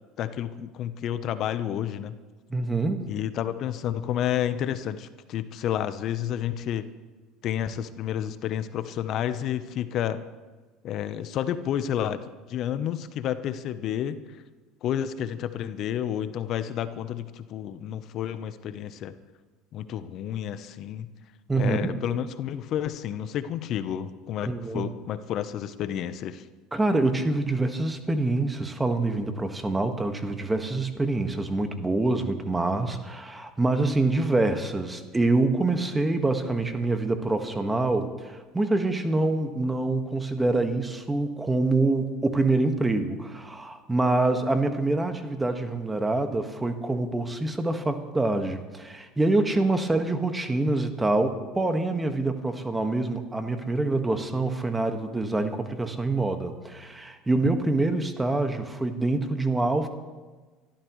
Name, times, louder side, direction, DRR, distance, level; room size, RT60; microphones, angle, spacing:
voice 1, 0.2-2.2 3.1-6.9 7.4-10.2 10.8-14.2 14.8-19.1 19.7-21.1 21.5-26.5, left 10 dB, 55° left, 12 dB, 0.9 m, -30 dB
voice 2, 2.5-3.1 21.5-22.0 24.5-24.8 26.7-59.9, right 2 dB, 15° right, 6 dB, 1.6 m, -26 dB
26.0 x 13.0 x 3.2 m, 1.3 s
hypercardioid pair, 85°, 0 cm